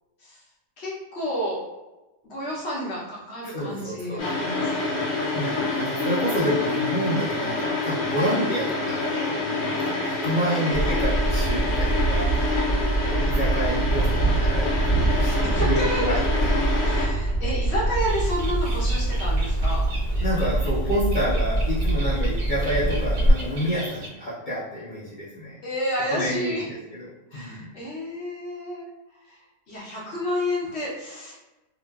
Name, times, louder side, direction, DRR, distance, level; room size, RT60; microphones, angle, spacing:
voice 1, 0.8-1.6 2.2-5.0 8.1-8.3 10.5-10.8 15.3-16.0 16.8-19.8 25.6-26.6 27.3-28.9 29.3-29.4 29.7-31.3, equal, 55° left, -6 dB, 0.8 m, -30 dB
voice 2, 3.4-4.6 5.3-12.3 13.0-16.6 20.2-25.6 26.1-27.1 27.3-27.7, equal, 70° left, -10 dB, 0.4 m, -29 dB
sound 1, 4.2-17.1, left 2 dB, 85° left, 1.3 m, -27 dB
sound 2, 10.7-23.3, right 2 dB, 10° right, 1.1 m, -24 dB
Bird, 18.1-24.1, right 1 dB, 65° right, 0.9 m, -40 dB
2.9 x 2.4 x 2.3 m, 1.0 s
omnidirectional pair, 1.7 m